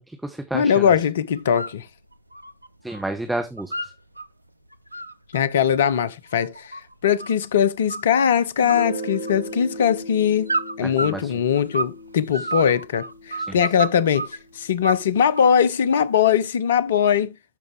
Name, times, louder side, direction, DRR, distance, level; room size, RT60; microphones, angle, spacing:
voice 1, 0.0-0.9 2.8-3.9 10.8-11.3 13.5-13.6, right 1 dB, 5° right, 1.0 m, -31 dB
voice 2, 0.5-1.9 5.3-10.5 10.8-17.3, left 8 dB, 60° left, 0.6 m, -21 dB
sound 1, 1.4-1.8 2.1-3.1 3.3-4.3 4.7-7.5 7.9-8.4 8.7-9.6 10.5-12.0 12.3-14.4 14.8-15.6, right 2 dB, 85° right, 0.5 m, -30 dB
Guitar, 8.6-14.1, right 1 dB, 65° right, 2.3 m, -37 dB
12.0 x 5.2 x 3.3 m
figure-of-eight pair, 90°, 0 cm